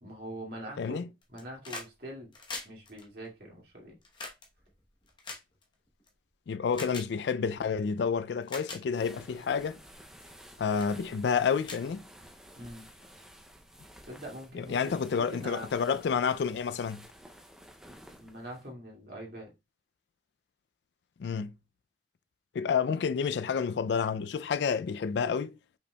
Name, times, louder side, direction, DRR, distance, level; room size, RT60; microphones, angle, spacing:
voice 1, 0.0-1.0 1.3-2.3 2.6-4.0 12.6-12.8 14.1-15.7 18.1-19.5, right 1 dB, 55° right, 2.1 m, -43 dB
voice 2, 0.8-1.1 6.5-9.8 10.6-12.0 14.5-17.0 21.2-21.5 22.5-25.6, left 6 dB, 70° left, 0.3 m, -29 dB
sound 1, 1.2-1.9 2.2-6.1 6.7-7.1 7.9-8.0 8.4-8.8 9.4-9.6 10.2-10.5 10.8-10.9 11.3-11.4 11.6-12.6 13.7-13.8, left 3 dB, 25° left, 0.9 m, -43 dB
sound 2, 8.9-18.7, equal, 5° right, 0.5 m, -53 dB
5.6 x 4.2 x 2.2 m
head